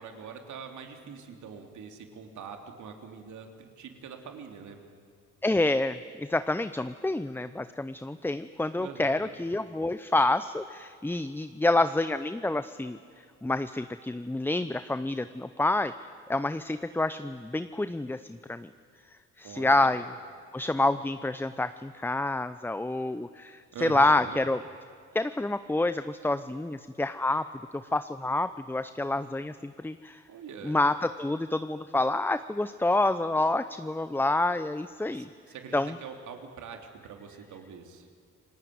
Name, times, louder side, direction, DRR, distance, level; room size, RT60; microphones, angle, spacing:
voice 1, 0.0-4.8 8.8-9.3 19.4-20.1 23.7-24.4 30.3-30.8 35.1-38.1, right 6 dB, 75° right, 4 dB, 3.3 m, -44 dB
voice 2, 5.4-13.0 13.4-15.9 16.3-18.7 19.4-20.0 20.5-24.6 25.1-27.5 27.7-30.2 30.6-35.3 35.7-36.0, left 2 dB, 5° left, 12 dB, 0.6 m, -28 dB
28.0 x 19.0 x 9.5 m, 2.2 s
cardioid pair, 90°, 30 cm